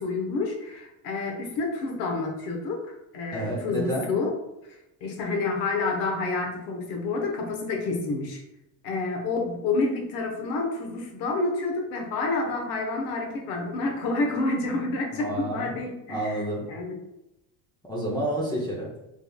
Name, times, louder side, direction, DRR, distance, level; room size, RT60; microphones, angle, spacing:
voice 1, 0.0-4.4 4.6-8.4 8.8-17.0, left 3 dB, 85° left, 2 dB, 1.1 m, -29 dB
voice 2, 3.3-4.1 15.1-15.7 16.1-16.6 17.8-18.9, right 1 dB, 10° left, -4 dB, 0.7 m, -29 dB
5.0 x 3.4 x 2.3 m, 0.91 s
cardioid pair, 150°, 40 cm